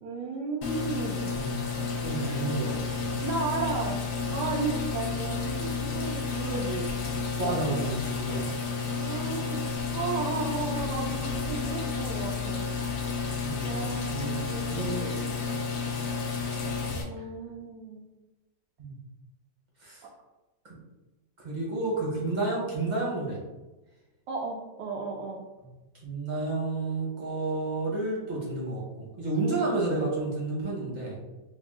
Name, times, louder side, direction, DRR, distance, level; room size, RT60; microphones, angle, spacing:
voice 1, 0.0-1.3 2.2-2.4 3.2-4.0 4.3-6.9 8.9-9.6 9.9-12.7 13.6-14.8 17.0-18.1 24.3-25.4 29.4-29.7, right 4 dB, 75° right, -2 dB, 1.2 m, -34 dB
sound 1, 0.6-17.0, left 5 dB, 65° left, 0.9 m, -31 dB
voice 2, 1.3-3.1 7.4-8.4 13.4-14.4 14.7-15.1 16.2-16.3 18.8-18.9 19.8-20.0 20.6-20.8 21.4-23.4 26.0-31.2, right 2 dB, 35° right, -3 dB, 0.8 m, -31 dB
3.6 x 2.3 x 3.5 m, 1.1 s
omnidirectional pair, 1.9 m